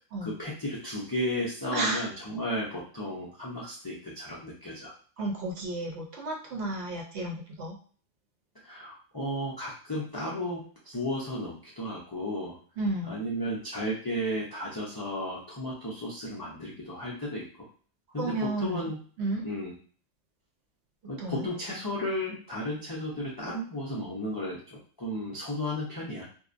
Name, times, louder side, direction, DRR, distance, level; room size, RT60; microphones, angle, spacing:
voice 1, 0.2-4.9 8.6-12.6 13.1-17.7 18.1-19.0 19.4-19.7 21.1-26.3, equal, 35° left, -5 dB, 0.3 m, -34 dB
voice 2, 1.7-2.1 5.2-7.8 12.8-13.1 18.2-18.9 19.2-19.5 21.2-21.5, right 2 dB, 65° right, -1 dB, 0.9 m, -32 dB
2.6 x 2.1 x 2.5 m, 0.43 s
omnidirectional pair, 1.3 m